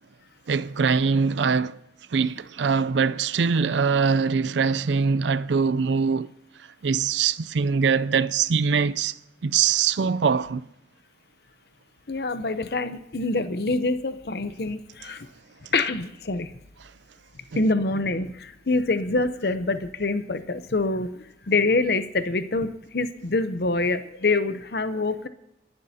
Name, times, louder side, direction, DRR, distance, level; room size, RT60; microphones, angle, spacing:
voice 1, 0.5-1.8 2.1-6.3 6.8-10.6 16.8-16.9, right 5 dB, 80° right, 0.5 m, -23 dB
voice 2, 12.1-15.3 15.7-16.5 17.6-25.3, left 3 dB, 60° left, 0.7 m, -25 dB
29.5 x 11.5 x 2.8 m
head